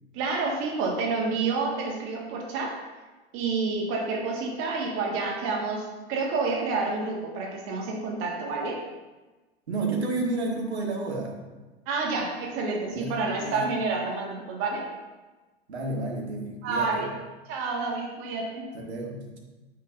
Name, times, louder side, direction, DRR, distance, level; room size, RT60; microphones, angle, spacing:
voice 1, 0.1-2.7 3.3-8.9 11.9-14.8 16.6-17.1 17.5-18.7, right 4 dB, 40° right, -1 dB, 1.7 m, -29 dB
voice 2, 9.7-11.3 12.9-13.6 15.7-17.0 18.7-19.4, right 2 dB, 80° right, 0 dB, 1.8 m, -31 dB
9.4 x 7.4 x 2.5 m, 1.2 s
figure-of-eight pair, 90°, 33 cm